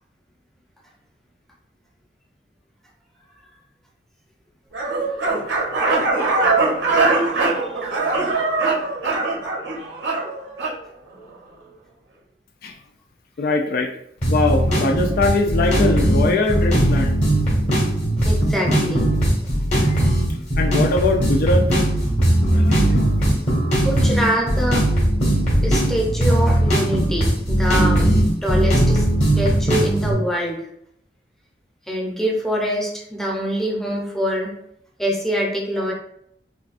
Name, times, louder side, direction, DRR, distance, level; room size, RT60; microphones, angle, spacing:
sound 1, 4.7-10.8, right 3 dB, 85° right, 0.9 m, -21 dB
voice 1, 7.4-7.8 18.2-19.1 22.4-22.5 23.8-24.9 25.6-28.2 28.4-29.1 29.3-30.7 31.9-34.5 35.0-35.9, equal, ahead, -2 dB, 0.7 m, -24 dB
voice 2, 13.4-13.9 14.3-17.2 19.8-20.1 20.6-21.7 22.4-23.5, left 3 dB, 55° left, 3 dB, 0.4 m, -22 dB
sound 2, 14.2-30.1, right 1 dB, 40° left, 1.4 m, -18 dB
5.0 x 2.2 x 2.5 m, 0.72 s
head